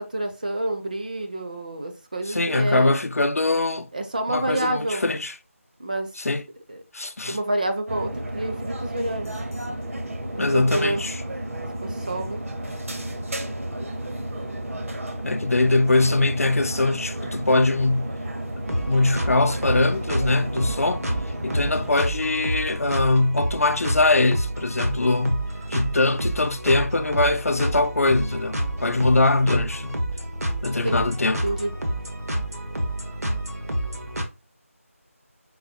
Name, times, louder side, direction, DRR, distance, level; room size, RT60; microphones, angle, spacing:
voice 1, 0.1-2.9 3.9-5.0 5.8-6.1 6.7-6.8 7.3-9.3 10.3-11.0 11.8-12.4 30.8-31.1 31.4-31.7, right 1 dB, 35° right, 0.5 m, -28 dB
voice 2, 2.3-3.9 4.3-5.3 6.2-6.4 6.9-7.4 10.4-11.2 15.2-18.1 18.8-21.0 21.4-25.4 25.7-30.0 30.6-31.4, left 2 dB, 75° left, 0.5 m, -22 dB
sound 1, 7.9-21.9, right 1 dB, 65° right, 0.8 m, -32 dB
sound 2, 18.7-34.2, right 1 dB, 85° right, 1.1 m, -29 dB
4.0 x 2.9 x 2.8 m
figure-of-eight pair, 170°, 8 cm